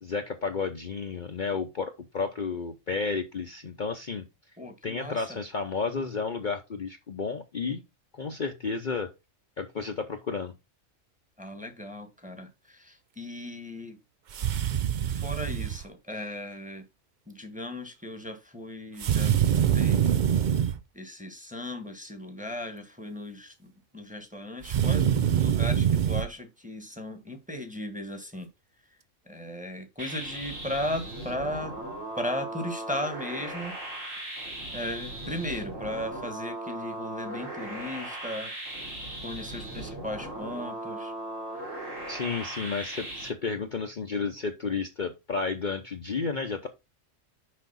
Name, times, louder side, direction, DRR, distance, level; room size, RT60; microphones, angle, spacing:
voice 1, 0.0-4.2 4.8-7.8 8.1-9.1 9.6-10.5 42.1-46.7, left 4 dB, 45° left, 0.9 m, -32 dB
voice 2, 4.6-5.4 11.4-14.0 15.1-16.8 17.3-20.0 20.9-28.5 29.3-31.7 32.1-33.8 34.7-38.5 39.2-41.1, left 1 dB, 5° right, 1.3 m, -36 dB
sound 1, 14.3-15.8 19.0-20.8 24.6-26.3, right 9 dB, 55° right, 0.5 m, -24 dB
sound 2, 30.0-43.3, right 1 dB, 85° right, 3.1 m, -38 dB
6.5 x 5.1 x 5.5 m
omnidirectional pair, 1.3 m